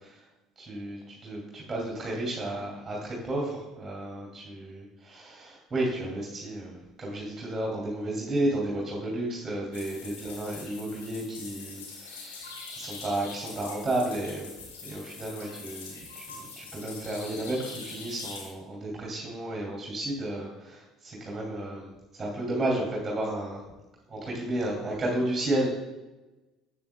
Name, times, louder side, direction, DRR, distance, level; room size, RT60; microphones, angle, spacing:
voice 1, 0.6-14.5 14.8-16.3 16.6-23.6 24.1-25.7, right 1 dB, 20° right, -3 dB, 2.5 m, -32 dB
sound 1, 9.7-18.5, left 4 dB, 75° left, 1.7 m, -43 dB
12.5 x 7.5 x 2.2 m, 1.1 s
figure-of-eight pair, 60°, 0 cm